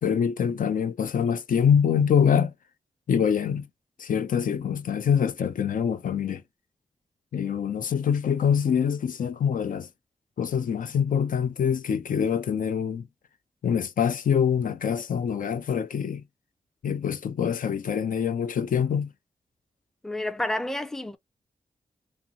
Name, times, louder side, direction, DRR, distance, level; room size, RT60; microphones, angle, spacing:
voice 1, 0.0-2.5 3.1-3.7 4.0-6.4 7.3-9.9 10.4-13.0 13.6-16.2 16.8-19.1, left 7 dB, 70° left, 0.4 m, -25 dB
voice 2, 20.0-21.2, left 1 dB, 5° left, 0.5 m, -30 dB
3.6 x 2.0 x 2.7 m
cardioid pair, 45°, 15 cm